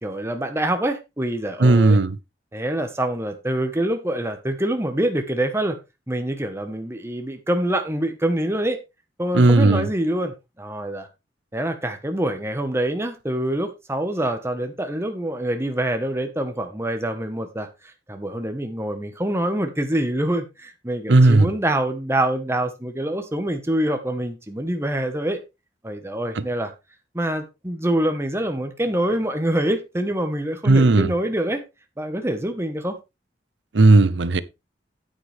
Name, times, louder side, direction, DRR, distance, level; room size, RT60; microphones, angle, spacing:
voice 1, 0.0-2.0 2.5-5.7 6.1-8.8 9.2-11.1 11.5-25.4 25.8-26.7 27.1-31.6 32.0-33.0, right 1 dB, 15° right, 1.2 m, -25 dB
voice 2, 1.6-2.2 9.3-9.9 21.1-21.5 30.7-31.1 33.7-34.4, right 2 dB, 75° right, 0.7 m, -15 dB
9.7 x 9.1 x 3.4 m
head